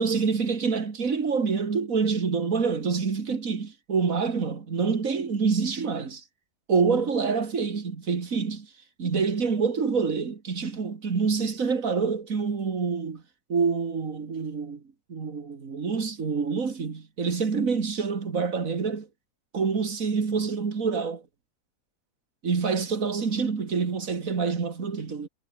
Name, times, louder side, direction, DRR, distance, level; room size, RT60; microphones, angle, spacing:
voice 1, 0.0-6.2 6.7-8.7 9.0-13.2 13.5-14.8 15.1-19.1 19.5-21.2 22.4-25.3, right 5 dB, 55° right, 2.5 m, -26 dB
omnidirectional pair, 1.7 m